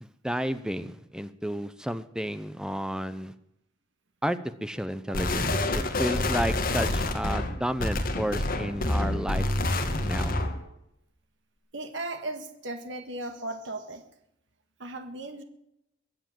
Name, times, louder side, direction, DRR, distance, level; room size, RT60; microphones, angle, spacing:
voice 1, 0.0-3.3 4.2-9.5 10.0-10.4, equal, 5° right, 13 dB, 0.7 m, -32 dB
sound 1, 5.1-10.6, left 2 dB, 50° left, 1.9 m, -27 dB
voice 2, 11.7-14.0 14.8-15.4, right 2 dB, 80° right, 7 dB, 1.6 m, -36 dB
22.5 x 7.6 x 7.6 m, 0.81 s
head